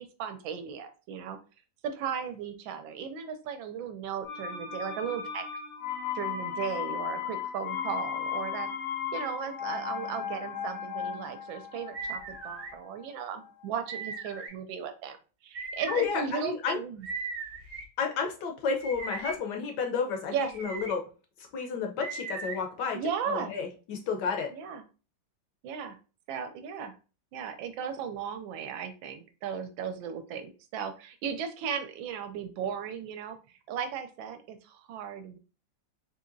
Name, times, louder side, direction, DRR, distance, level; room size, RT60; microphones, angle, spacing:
voice 1, 0.0-1.4 1.8-5.4 6.1-8.7 9.1-15.2 15.4-17.1 20.3-20.5 22.9-23.5 24.5-24.8 25.6-26.0 26.3-26.9 27.3-33.4 33.7-35.4, right 7 dB, 80° right, 8 dB, 1.3 m, -36 dB
sound 1, 4.2-14.0 14.3-14.4, left 7 dB, 90° left, 1.7 m, -36 dB
sound 2, 11.9-12.7 13.9-14.5 15.5-16.1 17.0-17.8 18.8-19.4 20.4-20.9 22.0-22.6, right 4 dB, 60° right, 1.3 m, -38 dB
voice 2, 15.9-16.8 18.0-21.0 21.5-23.0 23.3-24.5, left 5 dB, 70° left, 4 dB, 1.1 m, -31 dB
3.7 x 2.8 x 2.5 m, 0.34 s
omnidirectional pair, 2.1 m